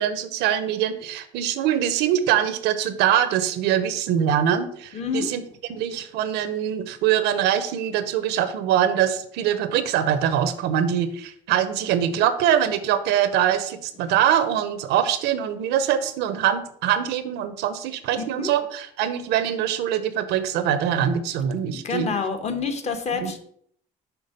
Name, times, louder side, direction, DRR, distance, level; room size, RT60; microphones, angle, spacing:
voice 1, 0.0-5.4 5.7-22.1 23.2-23.3, right 10 dB, 90° right, 11 dB, 0.7 m, -23 dB
voice 2, 4.9-5.3 18.2-18.5 21.7-23.4, left 5 dB, 40° left, 6 dB, 1.0 m, -28 dB
5.9 x 3.5 x 5.2 m, 0.66 s
cardioid pair, 110°, 17 cm